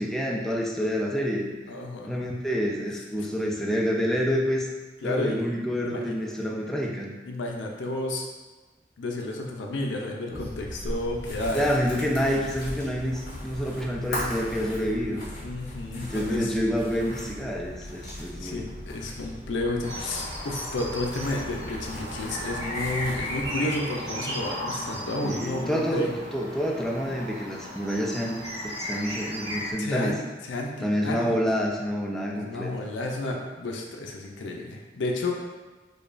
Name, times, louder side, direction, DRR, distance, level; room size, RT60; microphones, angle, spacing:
voice 1, 0.0-1.5 2.1-4.7 5.0-7.1 11.5-15.3 16.0-18.7 25.2-30.2 30.8-32.7, equal, ahead, -1 dB, 0.3 m, -28 dB
voice 2, 1.7-2.2 5.0-5.4 6.0-6.1 7.3-8.3 9.0-11.7 15.4-16.6 18.4-26.1 29.8-31.4 32.3-35.6, left 2 dB, 80° left, 1 dB, 0.5 m, -31 dB
sound 1, 10.3-23.5, left 1 dB, 55° left, 1.2 m, -38 dB
sound 2, 19.8-29.7, equal, 70° right, 1.2 m, -35 dB
5.0 x 2.2 x 2.5 m, 1.2 s
head